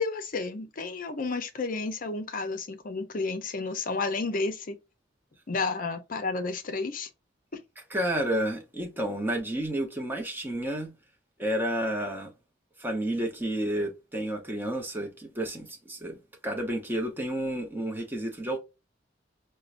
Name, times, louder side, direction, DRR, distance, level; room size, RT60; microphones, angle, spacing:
voice 1, 0.0-4.8 5.5-7.1 7.5-7.6, left 3 dB, 45° left, 0.6 m, -31 dB
voice 2, 7.9-10.9 11.4-12.3 12.8-18.6, right 1 dB, 10° right, 0.8 m, -31 dB
4.5 x 2.2 x 2.5 m
head